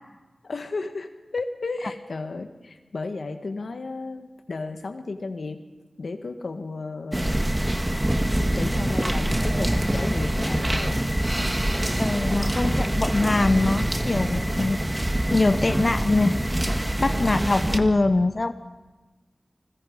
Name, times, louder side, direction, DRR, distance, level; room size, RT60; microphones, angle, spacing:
voice 1, 0.4-5.6 6.0-7.7 8.4-11.0 17.2-17.5, left 3 dB, 80° left, 6 dB, 1.5 m, -34 dB
sound 1, 7.1-17.8, right 1 dB, 15° right, 1.5 m, -25 dB
voice 2, 12.0-14.8 15.3-16.4 17.0-18.5, left 2 dB, 40° left, 10 dB, 0.6 m, -23 dB
29.0 x 21.5 x 5.3 m, 1.3 s
wide cardioid pair, 85°, 0 cm